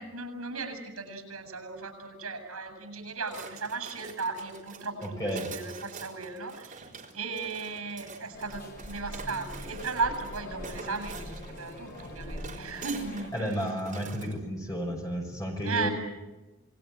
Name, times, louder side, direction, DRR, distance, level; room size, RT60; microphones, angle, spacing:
voice 1, 0.0-13.6 15.6-15.9, right 4 dB, 75° right, 8 dB, 7.7 m, -36 dB
sound 1, 3.3-14.4, right 4 dB, 35° right, 4.0 m, -46 dB
voice 2, 5.0-5.5 13.3-15.9, equal, 15° left, 1 dB, 6.1 m, -32 dB
sound 2, 8.3-13.3, left 1 dB, 45° left, 4.0 m, -42 dB
27.5 x 21.0 x 8.9 m, 1.1 s
head